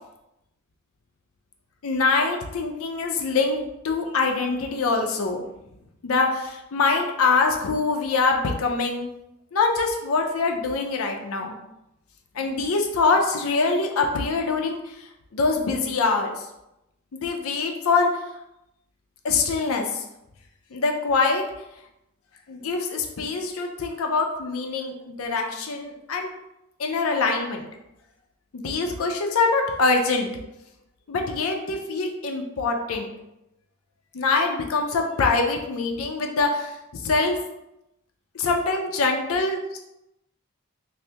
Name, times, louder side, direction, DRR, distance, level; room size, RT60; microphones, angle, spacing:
voice 1, 1.8-5.4 6.0-9.1 9.5-11.6 12.3-16.5 17.1-18.1 19.2-20.0 20.7-21.4 22.5-26.3 26.8-27.7 28.5-30.3 31.1-33.1 34.1-37.4 38.3-39.8, left 4 dB, 80° left, 3 dB, 0.5 m, -24 dB
3.3 x 2.6 x 2.8 m, 0.88 s
head